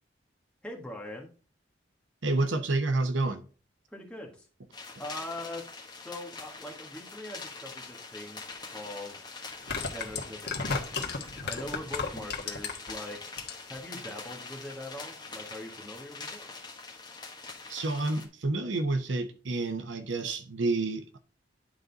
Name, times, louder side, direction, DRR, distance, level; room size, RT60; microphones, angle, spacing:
voice 1, 0.6-1.3 3.9-4.5 5.0-9.5 9.8-13.2 13.7-16.4, left 1 dB, 5° left, 1.5 m, -42 dB
voice 2, 2.2-3.4 17.7-21.2, right 2 dB, 80° right, 0.8 m, -29 dB
sound 1, 4.7-18.3, left 4 dB, 20° left, 1.3 m, -44 dB
sound 2, 8.5-8.6 9.5-12.9 13.3-13.8 14.1-14.2, left 4 dB, 55° left, 1.4 m, -33 dB
10.5 x 4.0 x 4.0 m
head